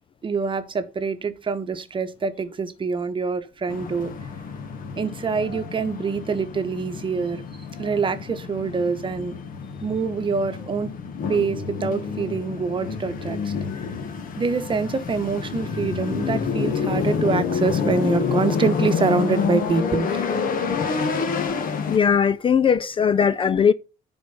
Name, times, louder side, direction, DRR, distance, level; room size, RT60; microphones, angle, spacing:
voice 1, 0.2-4.1 5.0-7.4 7.8-9.3 9.8-10.9 11.3-13.5 14.4-20.3, right 4 dB, 30° right, 1.1 m, -25 dB
sound 1, 3.7-22.0, left 5 dB, 55° left, 1.6 m, -28 dB
voice 2, 21.9-23.7, left 7 dB, 30° left, 0.4 m, -19 dB
10.0 x 4.5 x 5.5 m
cardioid pair, 110°, 17 cm